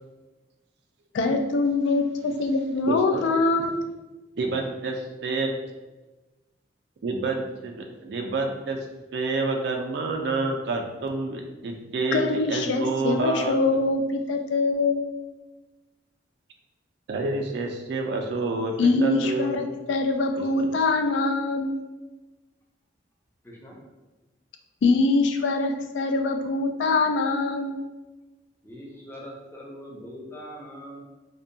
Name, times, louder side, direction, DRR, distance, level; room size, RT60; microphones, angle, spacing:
voice 1, 1.1-3.7 12.1-15.0 18.8-21.7 24.8-27.8, left 3 dB, 90° left, 6 dB, 0.3 m, -23 dB
voice 2, 2.9-3.3 4.4-5.5 7.0-8.8 9.1-13.6 17.1-19.6 20.6-20.9, right 3 dB, 65° right, 3 dB, 0.3 m, -28 dB
voice 3, 23.4-23.8 28.6-31.0, equal, 15° left, -3 dB, 0.4 m, -42 dB
2.6 x 2.2 x 2.6 m, 1.1 s
head